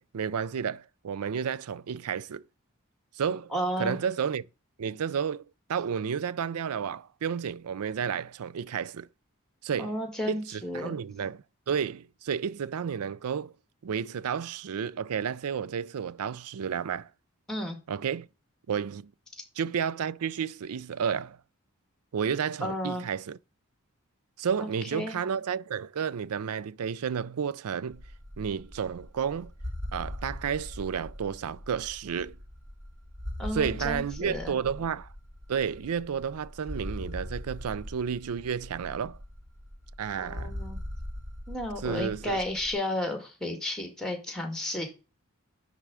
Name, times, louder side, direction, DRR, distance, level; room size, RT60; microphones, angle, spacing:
voice 1, 0.0-2.4 3.1-3.5 3.8-4.4 4.8-9.1 9.6-9.9 10.3-13.5 13.8-17.1 17.9-18.3 18.7-19.1 19.6-21.4 22.1-23.4 24.4-28.0 28.4-29.5 29.9-32.4 33.5-35.1 35.5-39.2 40.0-40.6 41.8-42.4, right 7 dB, 85° right, 0.4 m, -31 dB
voice 2, 3.5-4.0 9.8-11.0 17.5-17.8 22.6-23.0 24.6-25.2 33.4-34.6 40.2-40.8 41.5-44.9, left 1 dB, 5° left, 1.8 m, -33 dB
sound 1, 27.9-42.7, left 1 dB, 50° right, 3.0 m, -41 dB
10.5 x 3.7 x 4.8 m
head